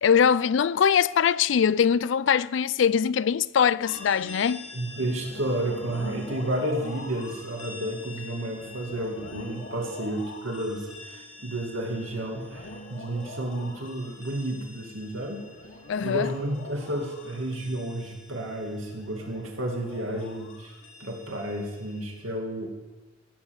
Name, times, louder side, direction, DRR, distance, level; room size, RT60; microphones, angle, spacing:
voice 1, 0.0-4.7 15.9-16.3, left 7 dB, 65° left, 0.4 m, -22 dB
sound 1, 3.8-22.3, left 2 dB, 85° left, 2.3 m, -44 dB
voice 2, 4.7-15.4 16.0-22.9, right 1 dB, 90° right, 2.4 m, -31 dB
16.0 x 6.8 x 8.0 m
head